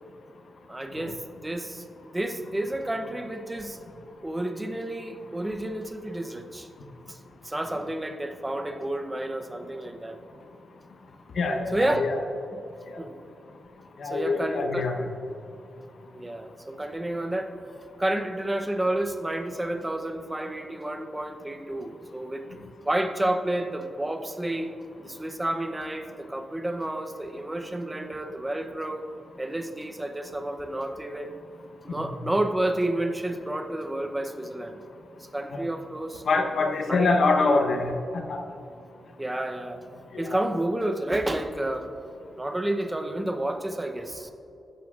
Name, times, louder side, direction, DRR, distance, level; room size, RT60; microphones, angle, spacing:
voice 1, 0.7-3.8 4.2-6.7 7.1-7.2 7.4-10.2 11.7-12.0 13.0-13.2 14.0-14.9 16.1-17.5 18.0-22.4 22.8-24.7 25.0-29.1 29.4-31.3 31.8-34.8 35.2-36.2 36.9-37.1 39.2-39.8 40.2-41.9 42.4-44.3, right 1 dB, 10° right, 6 dB, 0.6 m, -30 dB
voice 2, 11.4-12.2 14.0-14.9 32.0-32.1 36.3-37.9 38.3-38.4 40.1-40.5, left 3 dB, 55° left, 4 dB, 0.9 m, -24 dB
14.5 x 12.0 x 2.4 m, 2.8 s
wide cardioid pair, 170°, 0 cm